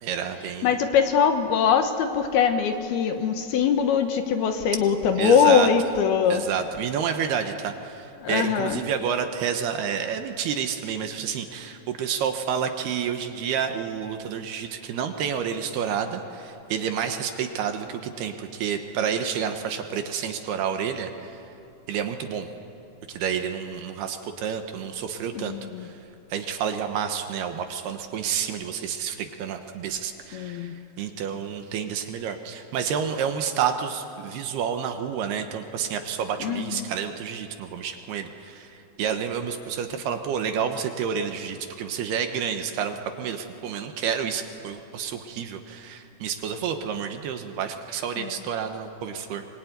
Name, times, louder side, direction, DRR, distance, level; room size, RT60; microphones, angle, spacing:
voice 1, 0.0-0.7 5.2-5.7 6.3-21.4 21.9-22.5 23.1-26.0 26.3-49.5, right 7 dB, 70° right, 6 dB, 2.9 m, -29 dB
voice 2, 0.6-6.4 8.2-8.8 25.3-25.9 30.3-30.8 36.4-36.8 48.2-48.3, left 7 dB, 70° left, 6 dB, 2.8 m, -22 dB
24.5 x 23.0 x 9.5 m, 2.8 s
omnidirectional pair, 5.2 m